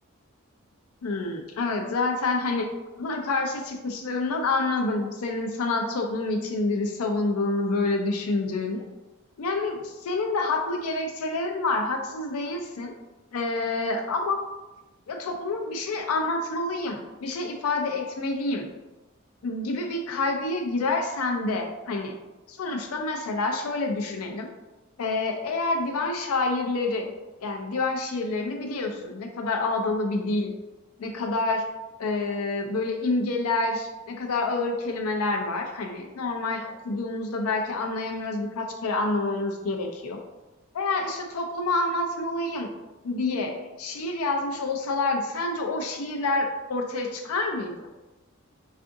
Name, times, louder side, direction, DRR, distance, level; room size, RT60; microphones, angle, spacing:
voice 1, 1.0-2.7 3.0-8.8 9.4-12.9 13.3-14.4 15.1-18.7 19.4-22.2 22.5-24.5 25.0-27.1 27.4-30.5 31.0-31.6 32.0-40.2 40.7-42.7 43.0-47.9, left 3 dB, 85° left, 3 dB, 0.4 m, -28 dB
3.5 x 2.5 x 2.5 m, 1.1 s
head